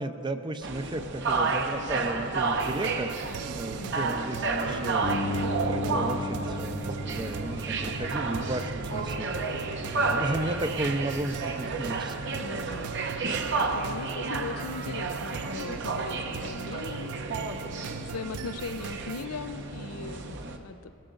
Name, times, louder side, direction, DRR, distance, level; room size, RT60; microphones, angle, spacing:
voice 1, 0.0-12.6, right 1 dB, 20° right, 9 dB, 0.5 m, -34 dB
sound 1, 0.6-20.6, right 3 dB, 55° right, 0.9 m, -31 dB
sound 2, 2.6-19.2, right 8 dB, 85° right, 0.4 m, -41 dB
voice 2, 3.7-4.1 12.4-12.9 13.3-17.2 18.1-20.4 20.6-20.8, left 4 dB, 85° left, 11 dB, 0.6 m, -39 dB
Bass guitar, 5.0-11.3, left 1 dB, 15° left, 0.7 m, -36 dB
20.0 x 13.0 x 3.9 m, 2.9 s
head